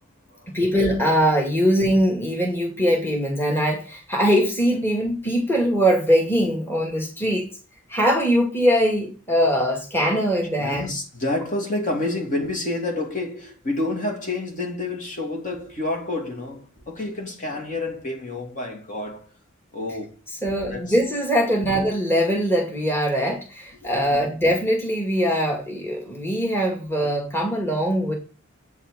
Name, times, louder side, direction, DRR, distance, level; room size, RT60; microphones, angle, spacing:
voice 1, 0.5-7.5 7.9-10.9 20.4-28.1, equal, 10° left, 2.2 m, -22 dB
voice 2, 10.6-19.3 19.7-20.1 20.5-21.0 21.5-21.6 23.8-24.2, left 2 dB, 40° left, 2.8 m, -29 dB
8.6 x 6.5 x 8.0 m
head